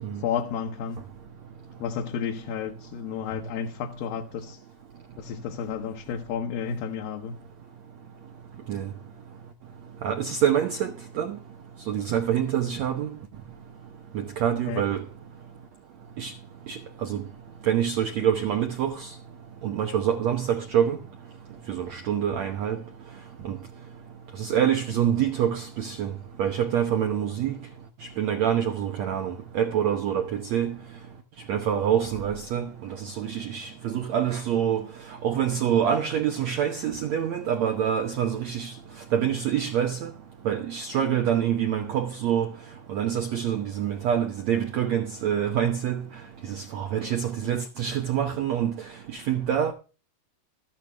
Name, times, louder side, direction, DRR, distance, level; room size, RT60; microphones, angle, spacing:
voice 1, 0.2-1.0 1.8-4.6 5.2-7.4 14.7-14.9, left 7 dB, 75° left, 2.6 m, -31 dB
voice 2, 10.0-11.4 11.9-13.1 14.1-15.0 16.2-16.3 16.7-17.2 17.7-19.1 19.6-21.0 21.7-22.8 23.4-23.6 24.4-26.1 26.4-27.6 28.2-30.7 31.5-34.8 35.2-38.7 39.1-40.1 40.4-42.5 42.9-46.0 46.5-48.7 49.1-49.7, right 9 dB, 80° right, 1.5 m, -26 dB
13.5 x 11.5 x 3.4 m
omnidirectional pair, 4.5 m